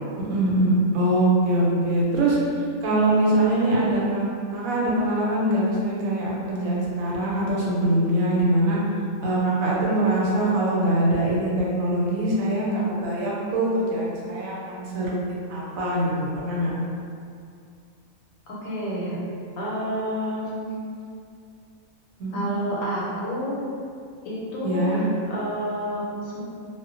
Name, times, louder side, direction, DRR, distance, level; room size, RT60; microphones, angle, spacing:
voice 1, 0.3-4.3 4.5-8.8 9.2-16.1 16.4-16.7 22.2-22.4 24.6-25.0, right 1 dB, 85° right, -5 dB, 1.0 m, -23 dB
voice 2, 18.5-19.2 19.6-20.7 22.3-23.6 24.2-25.0 25.3-26.4, equal, 80° left, -6 dB, 1.0 m, -29 dB
2.3 x 2.1 x 2.4 m, 2.3 s
omnidirectional pair, 1.4 m